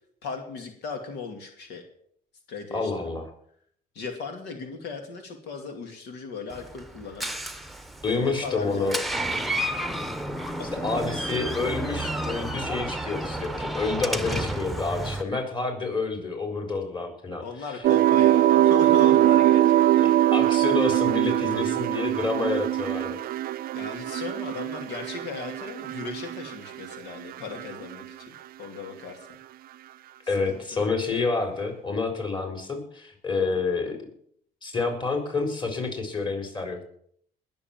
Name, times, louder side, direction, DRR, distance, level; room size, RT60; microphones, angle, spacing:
voice 1, 0.2-1.8 2.5-3.2 3.9-7.3 8.1-9.0 10.6-11.1 17.4-20.2 23.7-29.3 30.3-30.9, left 5 dB, 85° left, 4 dB, 2.5 m, -37 dB
voice 2, 2.7-3.3 8.0-9.0 10.8-17.4 20.3-23.2 30.3-34.0 34.6-36.8, left 3 dB, 30° left, 4 dB, 4.4 m, -28 dB
Door, 6.5-15.2, right 1 dB, ahead, 1.0 m, -31 dB
sound 1, 17.8-27.0 27.3-28.0, right 13 dB, 60° right, 0.5 m, -22 dB
20.0 x 7.0 x 7.4 m, 0.65 s
cardioid pair, 110°, 17 cm